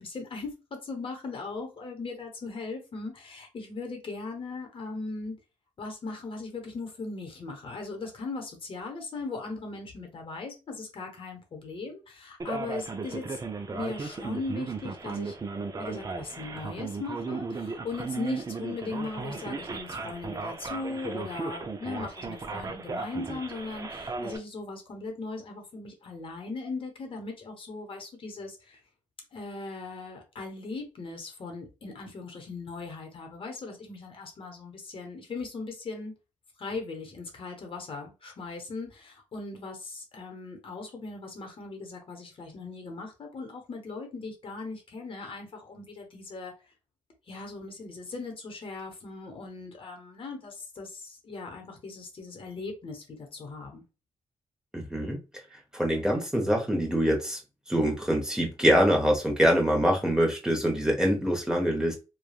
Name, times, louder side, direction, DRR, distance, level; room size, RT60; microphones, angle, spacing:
voice 1, 0.0-5.4 5.8-15.4 15.7-28.8 29.3-36.1 36.6-46.5 47.3-53.9, left 3 dB, 50° left, 0.9 m, -39 dB
Male speech man speaking, 12.4-24.4, right 4 dB, 30° right, 0.5 m, -36 dB
voice 2, 54.7-55.2 55.7-57.4 57.7-61.9, equal, 5° right, 0.8 m, -24 dB
3.2 x 2.2 x 2.3 m
cardioid pair, 80°, 12 cm